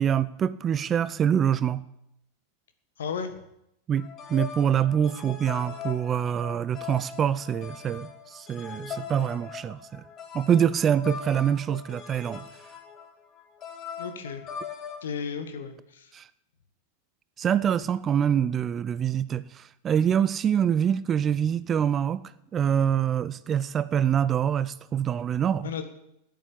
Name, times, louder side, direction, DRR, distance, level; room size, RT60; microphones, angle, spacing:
voice 1, 0.0-1.8 3.9-10.0 10.3-12.5 16.1-16.3 17.4-22.2 22.5-25.7, right 9 dB, 25° right, 17 dB, 0.5 m, -25 dB
voice 2, 3.0-3.3 14.0-14.4 15.0-16.1 25.6-25.8, left 6 dB, 65° left, 8 dB, 1.7 m, -34 dB
sound 1, 4.0-15.0, left 7 dB, 30° left, 1.9 m, -40 dB
10.5 x 9.0 x 8.8 m, 0.82 s
figure-of-eight pair, 90°, 0 cm